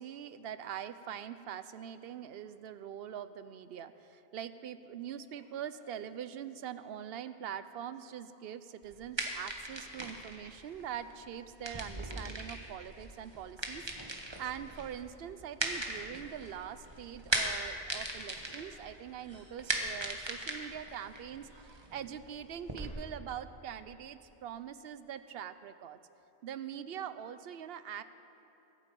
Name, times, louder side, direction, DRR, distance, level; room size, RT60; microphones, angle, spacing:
voice 1, 0.0-26.0 26.4-28.0, right 9 dB, 75° right, 13 dB, 0.8 m, -43 dB
sound 1, 8.8-22.9, right 2 dB, 25° right, 1.2 m, -39 dB
22.5 x 8.7 x 5.3 m, 2.9 s
omnidirectional pair, 1.0 m